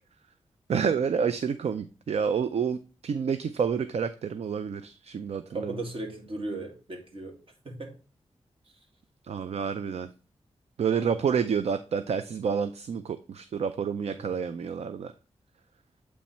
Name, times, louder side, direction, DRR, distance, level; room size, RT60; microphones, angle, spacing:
voice 1, 0.7-5.8 9.2-10.1 10.8-15.1, right 6 dB, 70° right, 0.4 m, -29 dB
voice 2, 5.5-7.4 7.7-8.0 14.1-14.4, right 2 dB, 55° right, 1.9 m, -36 dB
8.4 x 3.2 x 4.3 m
cardioid pair, 60°, 11 cm